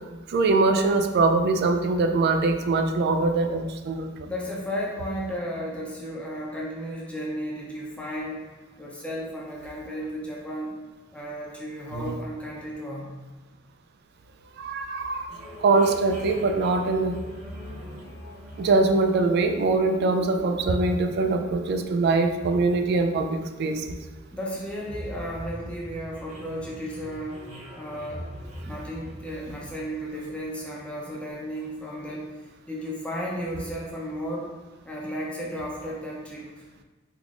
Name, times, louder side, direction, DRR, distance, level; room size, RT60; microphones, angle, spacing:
voice 1, 0.3-4.3 11.9-12.0 14.6-15.3 15.6-17.2 18.6-24.0, right 3 dB, 55° right, 6 dB, 0.3 m, -23 dB
voice 2, 4.2-8.4 8.8-10.7 11.1-13.1 24.3-27.4 27.7-28.2 28.6-32.3 32.7-34.5 34.8-36.6, equal, 5° left, -5 dB, 0.5 m, -34 dB
sound 1, 15.3-30.7, equal, 35° right, 0.7 m, -43 dB
3.6 x 3.0 x 2.4 m, 1.2 s
head